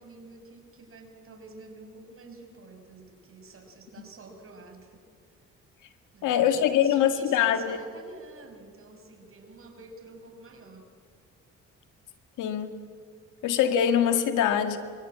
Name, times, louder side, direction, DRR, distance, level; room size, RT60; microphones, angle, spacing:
voice 1, 0.0-5.1 6.1-10.9, right 3 dB, 45° right, 4 dB, 5.9 m, -49 dB
voice 2, 6.2-7.8 12.4-12.8 13.4-14.8, left 9 dB, 90° left, 8 dB, 2.0 m, -23 dB
26.0 x 23.5 x 8.7 m, 2.1 s
cardioid pair, 90°, 30 cm